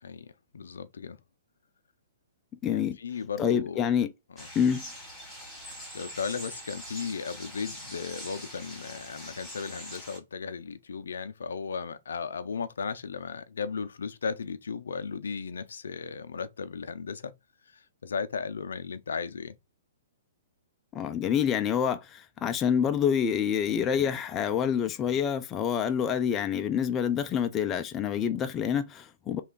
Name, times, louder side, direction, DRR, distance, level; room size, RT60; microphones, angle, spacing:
voice 1, 0.0-1.2 2.7-3.9 4.4-4.5 5.9-17.3 17.7-19.5, left 5 dB, 85° left, 0.5 m, -36 dB
voice 2, 2.6-3.0 3.4-4.1 4.5-4.9 20.9-29.4, left 8 dB, 20° left, 0.4 m, -27 dB
sound 1, 4.4-10.2, equal, ahead, 2.1 m, -43 dB
3.3 x 2.3 x 3.7 m
hypercardioid pair, 145°, 0 cm